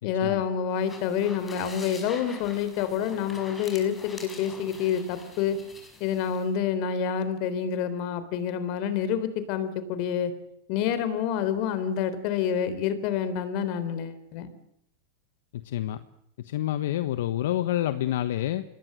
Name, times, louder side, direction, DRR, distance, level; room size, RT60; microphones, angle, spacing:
voice 1, 0.0-5.6 6.0-10.3 10.7-14.5, left 8 dB, 50° left, 13 dB, 3.8 m, -28 dB
sound 1, 0.7-6.5, left 3 dB, 15° left, 5.9 m, -45 dB
voice 2, 15.5-16.0 16.4-18.6, left 13 dB, 70° left, 11 dB, 1.3 m, -28 dB
26.5 x 19.5 x 7.8 m, 0.74 s
supercardioid pair, 140°, 0 cm